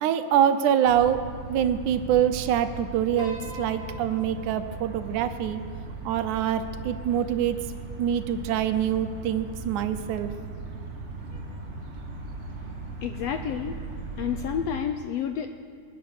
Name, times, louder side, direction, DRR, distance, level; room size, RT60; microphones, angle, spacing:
voice 1, 0.0-5.6 6.1-7.7 8.0-10.3, right 9 dB, 80° right, 9 dB, 2.2 m, -25 dB
sound 1, 0.8-14.7, right 3 dB, 35° right, 1.2 m, -38 dB
Piano, 3.2-7.6, equal, 25° left, 2.7 m, -47 dB
voice 2, 13.0-13.8 14.2-15.5, left 8 dB, 80° left, 7 dB, 1.5 m, -29 dB
23.5 x 9.2 x 6.5 m, 2.1 s
omnidirectional pair, 3.5 m